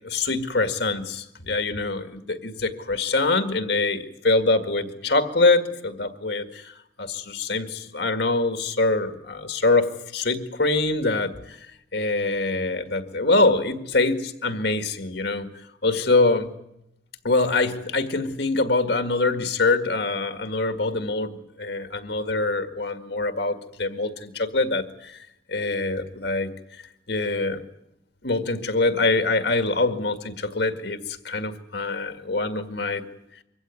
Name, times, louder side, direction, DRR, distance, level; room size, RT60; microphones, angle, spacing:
voice 1, 0.0-16.5 17.2-27.6 28.2-33.0, left 3 dB, 70° left, 7 dB, 1.9 m, -24 dB
24.0 x 16.0 x 9.6 m, 0.83 s
head